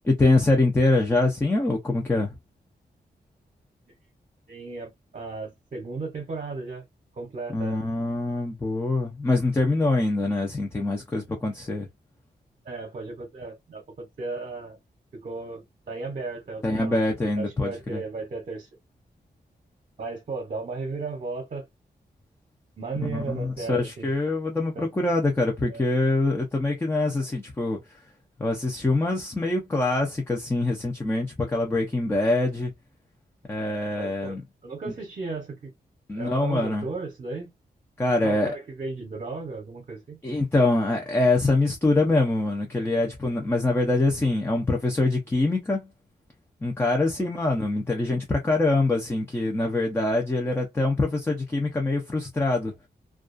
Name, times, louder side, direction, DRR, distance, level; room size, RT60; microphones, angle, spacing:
voice 1, 0.1-2.3 7.5-11.9 16.6-18.0 23.0-27.8 28.4-32.7 33.5-34.4 34.9-35.0 36.1-36.9 38.0-38.5 40.2-45.9 46.6-52.7, left 2 dB, 15° left, 0.5 m, -24 dB
voice 2, 4.5-6.8 7.2-7.8 12.6-14.8 15.1-17.0 17.4-18.7 20.0-21.6 22.8-24.1 24.7-24.9 25.7-25.9 34.0-34.4 34.6-35.7 36.1-37.5 38.2-40.2 47.2-47.3, right 3 dB, 50° right, 0.8 m, -35 dB
2.3 x 2.3 x 2.4 m
wide cardioid pair, 145°, 17 cm